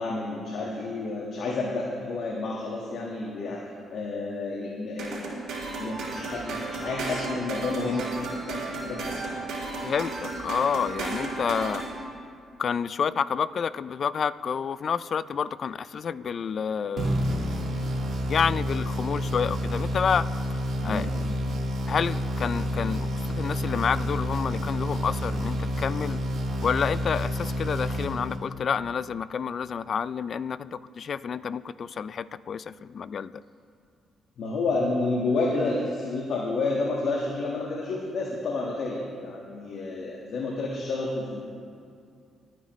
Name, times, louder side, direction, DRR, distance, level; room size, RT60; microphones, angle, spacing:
voice 1, 0.0-5.2 5.8-8.1 8.5-9.2 20.8-21.1 34.4-41.4, left 3 dB, 70° left, -2 dB, 1.5 m, -30 dB
sound 1, 5.0-11.9, right 3 dB, 90° right, 3.5 m, -34 dB
voice 2, 9.8-11.8 12.6-17.6 18.3-20.3 20.8-21.1 21.9-26.2 26.6-33.4, left 7 dB, 50° left, 17 dB, 0.3 m, -29 dB
sound 2, 17.0-28.7, equal, 60° right, 1.7 m, -29 dB
21.5 x 9.5 x 3.1 m, 2.4 s
cardioid pair, 90°, 0 cm